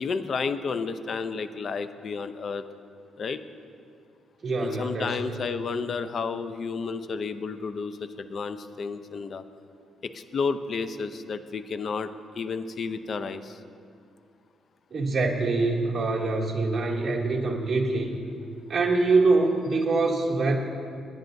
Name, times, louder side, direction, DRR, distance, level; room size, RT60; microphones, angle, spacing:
voice 1, 0.0-2.6 3.2-3.4 4.6-9.4 10.0-13.6, left 5 dB, 50° left, 11 dB, 0.6 m, -31 dB
voice 2, 4.4-5.2 14.9-18.1 18.7-20.6, right 3 dB, 35° right, -3 dB, 2.5 m, -24 dB
26.5 x 10.5 x 2.7 m, 2.3 s
cardioid pair, 90°, 0 cm